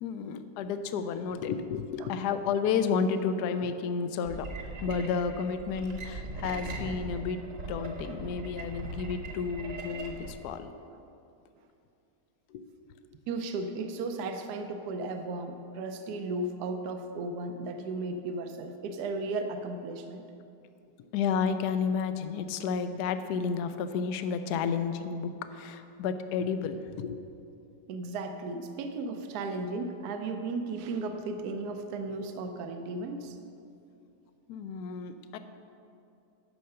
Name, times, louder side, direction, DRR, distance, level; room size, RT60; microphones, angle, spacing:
voice 1, 0.0-4.5 4.8-7.4 7.7-10.7 12.5-12.6 21.1-27.3 34.5-35.4, left 6 dB, 75° left, 10 dB, 1.1 m, -31 dB
sound 1, 4.2-10.3, right 2 dB, 50° right, 1.3 m, -40 dB
voice 2, 13.3-20.2 27.9-33.4, right 3 dB, 70° right, 6 dB, 1.2 m, -35 dB
10.5 x 5.6 x 6.6 m, 2.6 s
omnidirectional pair, 1.9 m